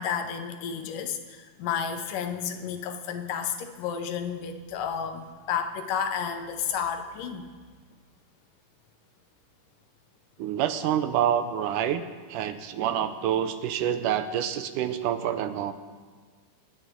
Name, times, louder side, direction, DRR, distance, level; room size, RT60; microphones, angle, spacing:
voice 1, 0.0-7.5, left 7 dB, 80° left, 7 dB, 2.5 m, -31 dB
voice 2, 10.4-12.0 12.3-15.7, right 10 dB, 80° right, 10 dB, 2.1 m, -27 dB
26.0 x 9.5 x 3.7 m, 1.5 s
omnidirectional pair, 3.8 m